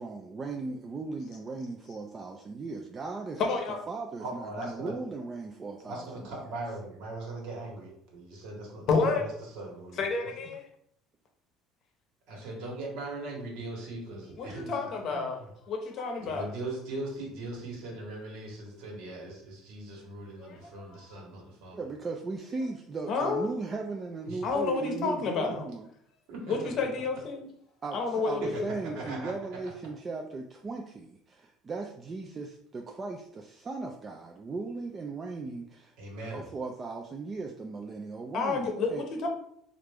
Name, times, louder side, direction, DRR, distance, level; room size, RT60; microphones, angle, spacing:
voice 1, 0.0-3.4 3.9-6.4 21.7-25.9 27.8-35.9 36.3-39.0, right 3 dB, 25° right, 2 dB, 0.3 m, -37 dB
voice 2, 3.4-3.8 8.9-9.2 10.0-10.7 14.4-15.4 15.7-16.4 20.4-20.6 20.9-21.0 23.1-23.5 24.4-25.6 26.5-27.5 27.9-29.0 38.3-39.3, left 4 dB, 50° left, 3 dB, 0.7 m, -30 dB
voice 3, 4.2-4.9 5.9-9.3 9.5-10.0 12.3-15.5 16.2-21.8 24.2-25.3 26.3-26.8 28.4-29.3 36.0-36.4, right 2 dB, 75° right, -1 dB, 1.3 m, -39 dB
3.2 x 2.5 x 3.4 m, 0.71 s
cardioid pair, 125°, 0 cm